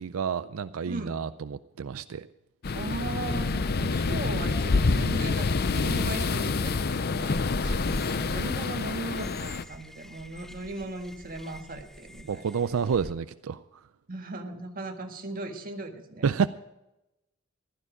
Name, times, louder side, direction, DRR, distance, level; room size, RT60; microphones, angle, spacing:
voice 1, 0.0-2.3 7.6-7.8 12.3-13.6 16.2-16.5, right 6 dB, 90° right, 13 dB, 0.4 m, -29 dB
sound 1, 2.6-9.6, left 4 dB, 50° left, 0.6 m, -27 dB
voice 2, 2.7-12.5 14.1-16.3, right 2 dB, 45° right, 4 dB, 1.7 m, -38 dB
sound 2, 7.3-13.1, equal, ahead, 0.4 m, -40 dB
15.5 x 12.5 x 4.9 m, 0.94 s
head